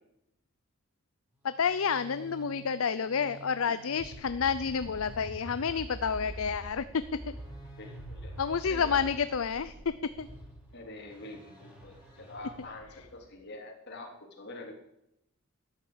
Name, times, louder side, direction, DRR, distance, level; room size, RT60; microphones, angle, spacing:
voice 1, 1.4-7.0 8.4-10.3, left 6 dB, 70° left, 13 dB, 0.6 m, -30 dB
sound 1, 1.4-13.3, right 1 dB, 10° right, 4.8 m, -46 dB
voice 2, 7.8-8.3 8.6-9.0 10.7-14.7, left 2 dB, 55° left, 2 dB, 3.4 m, -45 dB
13.0 x 10.5 x 8.0 m, 0.83 s
head